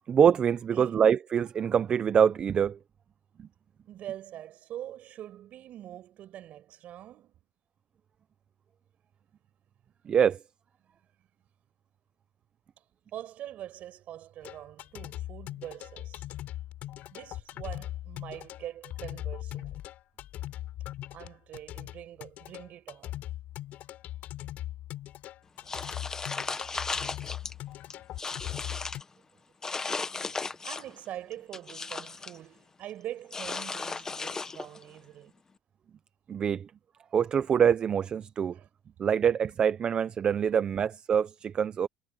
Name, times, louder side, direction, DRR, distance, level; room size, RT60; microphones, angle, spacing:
voice 1, 0.1-2.8 3.4-3.5 10.1-10.4 36.3-36.7 37.1-38.6 39.0-41.9, right 8 dB, 30° right, 0.5 m, -25 dB
voice 2, 3.9-7.4 13.1-16.3 17.1-19.8 21.1-23.2 30.3-35.3 38.5-38.7, right 12 dB, 45° right, 5.8 m, -44 dB
sound 1, 14.4-29.0, left 14 dB, 50° left, 4.1 m, -40 dB
sound 2, 25.7-27.5 27.9-29.0 29.6-31.0 31.3-32.4 33.3-34.8, left 4 dB, 15° left, 0.9 m, -35 dB
cardioid pair, 150°, 3 cm